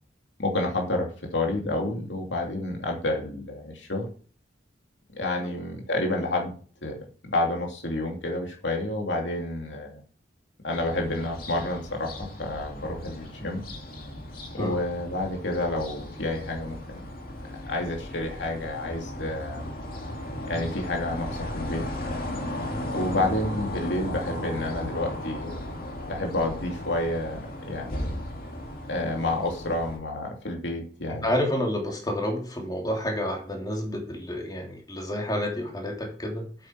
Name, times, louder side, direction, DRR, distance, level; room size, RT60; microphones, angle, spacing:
voice 1, 0.4-4.1 5.1-6.5 6.8-7.0 7.2-10.0 10.6-13.6 14.5-17.1 17.7-19.7 20.5-21.9 22.9-25.6 26.1-28.2 28.9-31.3, left 2 dB, 85° left, 1 dB, 2.9 m, -29 dB
sound 1, 10.7-30.0, left 1 dB, 50° left, 2.4 m, -36 dB
voice 2, 31.1-36.7, left 1 dB, 20° left, 1 dB, 2.7 m, -29 dB
9.0 x 7.7 x 5.9 m, 0.42 s
head